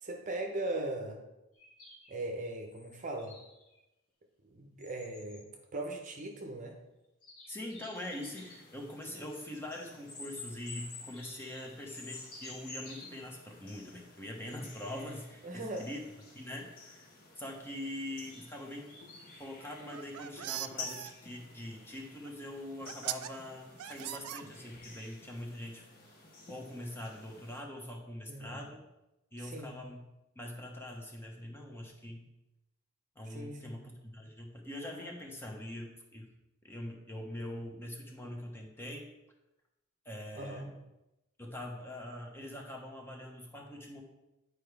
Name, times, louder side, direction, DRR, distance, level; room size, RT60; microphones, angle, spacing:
voice 1, 0.0-1.2 2.1-3.4 4.4-6.8 15.4-15.9 28.3-28.6 29.4-29.8 33.3-33.7 40.3-40.7, right 2 dB, 35° right, 3 dB, 0.8 m, -39 dB
sound 1, 1.5-3.8 4.8-5.4 6.3-6.4 7.2-8.6 10.1-13.4 14.5-15.0 17.5-19.4, left 3 dB, 85° left, 2.2 m, -50 dB
voice 2, 7.5-16.1 16.3-17.1 17.4-18.9 19.4-25.8 26.5-28.9 29.3-30.0 30.3-32.3 33.2-36.3 36.6-39.1 40.0-40.7 41.4-44.0, left 1 dB, 10° left, 1 dB, 0.9 m, -43 dB
sound 2, 7.9-27.6, left 3 dB, 40° left, 1.5 m, -53 dB
sound 3, 19.8-21.1 22.3-22.4 22.9-23.3 23.8-24.9, right 12 dB, 90° right, 0.4 m, -40 dB
10.0 x 4.7 x 3.4 m, 0.95 s
head